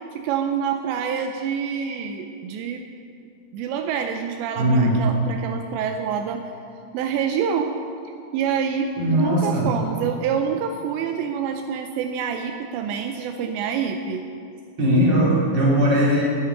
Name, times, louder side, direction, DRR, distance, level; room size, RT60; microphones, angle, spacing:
voice 1, 0.1-2.9 3.5-6.4 6.9-7.7 8.3-14.2, right 7 dB, 85° right, 5 dB, 2.8 m, -27 dB
voice 2, 4.5-5.0 9.0-9.7 14.8-16.2, equal, 30° right, -6 dB, 3.3 m, -19 dB
9.8 x 8.8 x 9.9 m, 2.4 s
omnidirectional pair, 5.3 m